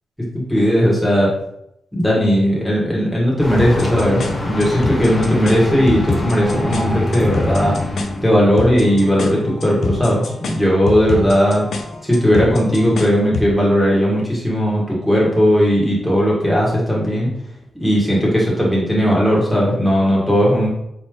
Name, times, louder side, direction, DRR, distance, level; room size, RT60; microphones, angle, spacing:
voice 1, 0.3-1.3 1.9-7.7 8.2-11.6 12.1-17.3 17.8-20.7, equal, 5° left, -5 dB, 1.6 m, -16 dB
sound 1, 3.4-8.4, left 1 dB, 40° left, 1.1 m, -25 dB
sound 2, 3.6-13.6, left 3 dB, 70° left, 0.6 m, -27 dB
4.1 x 3.2 x 3.6 m, 0.80 s
cardioid pair, 80°, 0 cm